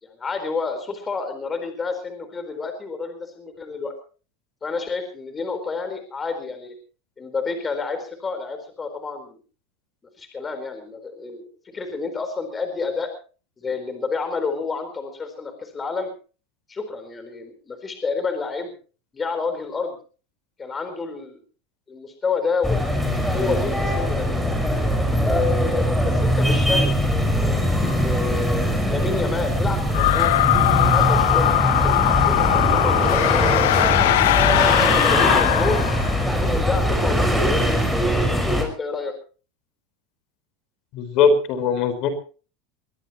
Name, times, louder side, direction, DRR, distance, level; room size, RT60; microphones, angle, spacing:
voice 1, 0.0-3.9 4.6-6.7 7.2-9.4 10.2-13.1 13.6-16.1 16.7-18.7 19.1-20.0 20.6-21.4 21.9-24.3 25.2-26.9 27.2-30.4 30.9-33.7 34.2-35.8 36.3-37.9 38.5-39.1, left 4 dB, 20° left, 7 dB, 4.3 m, -29 dB
sound 1, 22.6-38.6, equal, 5° left, 5.4 m, -21 dB
sound 2, 29.9-36.3, left 15 dB, 80° left, 1.2 m, -20 dB
voice 2, 40.9-42.1, left 5 dB, 50° left, 9 dB, 4.7 m, -20 dB
22.5 x 18.5 x 3.1 m, 0.38 s
supercardioid pair, 130°, 0 cm